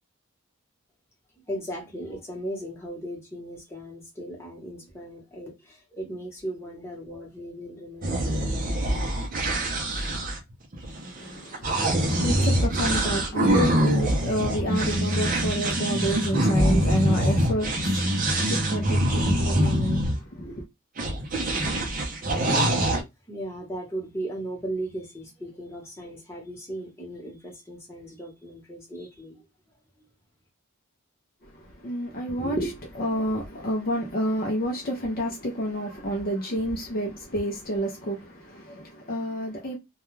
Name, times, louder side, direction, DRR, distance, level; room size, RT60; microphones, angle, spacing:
voice 1, 1.4-9.0 23.3-30.1, right 1 dB, 10° left, 0.9 m, -37 dB
sound 1, 8.0-20.2 21.0-23.0, right 1 dB, 40° right, 0.6 m, -24 dB
voice 2, 11.2-20.6 31.4-39.8, equal, 40° left, 0.5 m, -29 dB
2.3 x 2.2 x 3.1 m
head